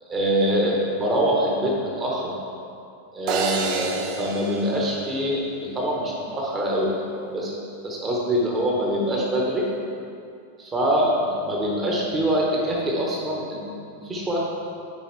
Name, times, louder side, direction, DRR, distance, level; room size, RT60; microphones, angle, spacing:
voice 1, 0.1-2.3 3.1-7.0 7.3-9.7 10.6-14.4, equal, 20° right, -3 dB, 1.3 m, -24 dB
sound 1, 3.3-5.6, right 5 dB, 45° right, 0.6 m, -29 dB
9.6 x 5.0 x 3.3 m, 2.5 s
figure-of-eight pair, 90°, 0 cm